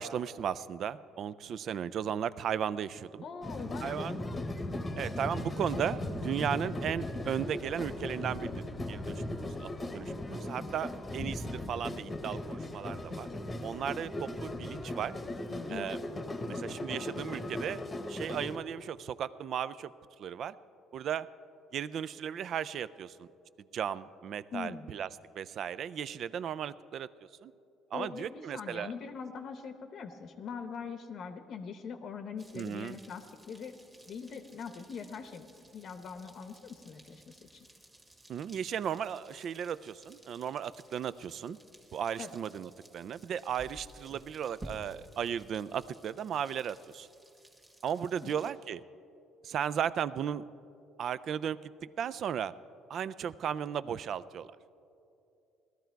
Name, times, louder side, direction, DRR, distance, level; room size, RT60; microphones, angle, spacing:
voice 1, 0.0-3.2 3.8-4.1 5.0-13.3 13.6-15.2 15.7-16.0 16.6-17.8 18.1-19.9 20.2-20.6 20.9-21.3 21.7-23.3 23.7-25.1 25.4-27.1 27.4-27.5 27.9-28.9 32.5-33.0 38.3-41.6 41.9-47.1 47.8-48.8 49.4-50.4 51.0-51.7 52.0-52.5 52.9-54.5, right 8 dB, 50° right, 16 dB, 0.3 m, -35 dB
voice 2, 3.2-4.0 15.5-15.9 16.5-16.6 24.5-24.9 27.9-33.8 34.0-37.7 42.2-42.3 48.2-48.3, left 6 dB, 50° left, 8 dB, 0.8 m, -42 dB
sound 1, 3.4-18.6, left 1 dB, 15° left, 1.0 m, -38 dB
sound 2, 32.4-48.5, right 1 dB, 15° right, 1.6 m, -55 dB
17.5 x 13.0 x 4.6 m, 2.7 s
cardioid pair, 130°, 0 cm